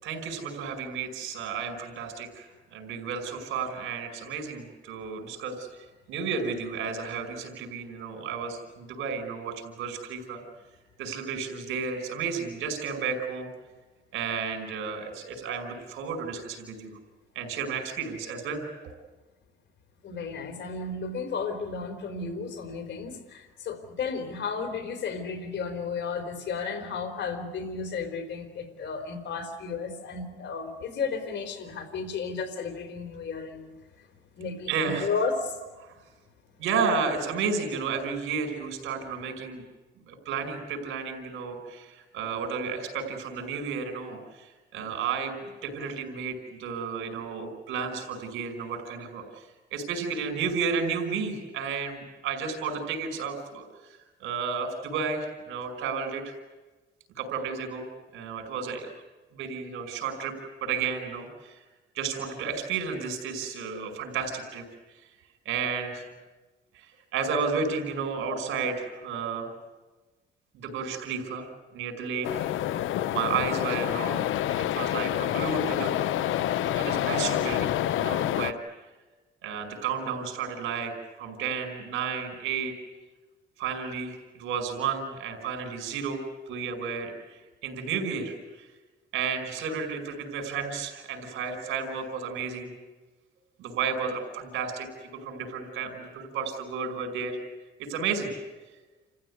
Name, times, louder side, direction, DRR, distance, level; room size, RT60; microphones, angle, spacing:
voice 1, 0.0-10.4 11.0-13.5 14.1-16.9 17.4-18.7 34.7-35.1 36.6-39.6 40.1-56.3 57.2-58.9 59.3-60.3 60.6-61.6 62.0-65.0 65.5-66.0 66.7-69.5 70.5-72.3 72.6-72.7 73.1-76.0 76.8-78.6 79.4-80.9 81.2-82.7 83.6-88.7 89.1-92.7 93.6-97.4 97.8-98.3, right 5 dB, 90° right, 4 dB, 5.4 m, -32 dB
voice 2, 20.0-33.7 34.4-35.6, left 5 dB, 65° left, 6 dB, 4.1 m, -33 dB
sound 1, 72.2-78.5, left 12 dB, 85° left, 0.8 m, -27 dB
29.0 x 15.0 x 9.7 m, 1.2 s
cardioid pair, 90°, 20 cm